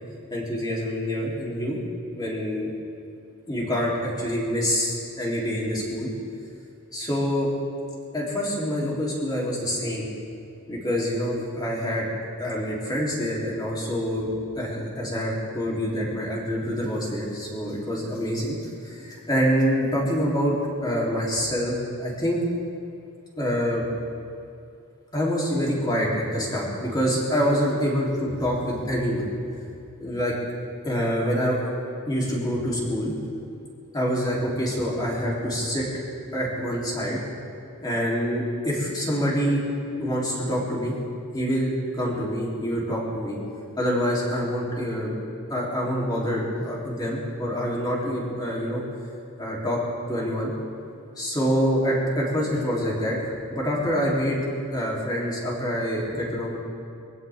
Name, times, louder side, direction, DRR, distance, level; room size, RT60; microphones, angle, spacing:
voice 1, 0.3-1.8 2.1-2.7 3.5-6.1 6.9-7.5 8.1-10.1 10.7-12.1 12.4-14.3 14.5-18.5 18.8-20.5 20.8-22.4 23.4-23.9 25.1-29.3 30.0-30.3 30.8-31.6 32.0-33.1 33.9-35.8 36.3-37.2 37.8-39.6 40.0-41.0 41.3-43.4 43.8-45.1 45.5-48.8 49.4-49.8 50.1-50.5 51.2-54.4 54.7-56.6, equal, 20° left, -5 dB, 3.5 m, -26 dB
24.0 x 16.5 x 3.7 m, 2.5 s
head